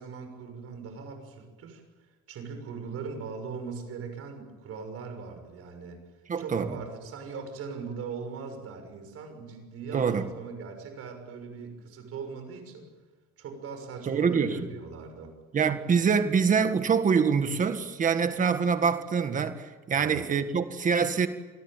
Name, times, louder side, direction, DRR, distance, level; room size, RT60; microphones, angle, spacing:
voice 1, 0.0-1.8 2.3-6.0 6.4-12.9 13.4-15.3 19.9-20.2, right 5 dB, 45° right, 6.4 m, -40 dB
voice 2, 6.3-6.7 9.9-10.3 14.1-14.7 15.5-21.3, right 6 dB, 25° right, 1.7 m, -25 dB
28.0 x 20.5 x 9.1 m
cardioid pair, 180°, 33 cm